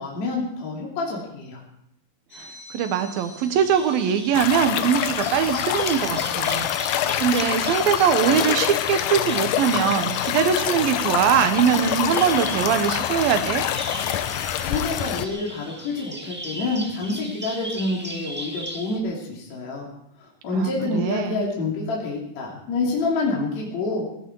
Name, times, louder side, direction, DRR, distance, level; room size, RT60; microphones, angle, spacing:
voice 1, 0.0-1.6 14.6-19.9 20.4-24.1, left 3 dB, 55° left, -3 dB, 4.0 m, -27 dB
sound 1, 2.3-15.3, left 2 dB, 30° left, 5.4 m, -43 dB
voice 2, 2.4-6.7 7.2-13.6 20.5-21.5, right 8 dB, 90° right, 8 dB, 3.0 m, -22 dB
Bird vocalization bird call bird song, 3.5-19.0, equal, 15° right, 0.4 m, -38 dB
sound 2, 4.3-15.3, left 11 dB, 75° left, 2.1 m, -25 dB
18.0 x 14.0 x 4.7 m, 0.76 s
omnidirectional pair, 4.0 m